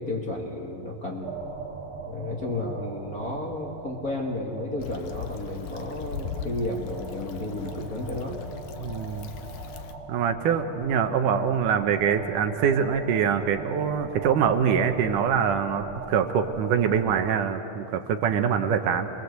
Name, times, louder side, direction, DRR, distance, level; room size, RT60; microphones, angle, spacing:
voice 1, 0.0-1.3 2.1-8.4, left 2 dB, 35° left, -1 dB, 1.7 m, -32 dB
sound 1, 1.2-17.3, right 4 dB, 45° right, 2.1 m, -40 dB
Stream / Traffic noise roadway noise / Trickle dribble, 4.8-9.9, left 8 dB, 75° left, 2.4 m, -39 dB
voice 2, 8.8-9.3 10.1-19.1, right 7 dB, 70° right, 7 dB, 2.4 m, -24 dB
27.5 x 21.5 x 8.1 m, 3.0 s
omnidirectional pair, 3.9 m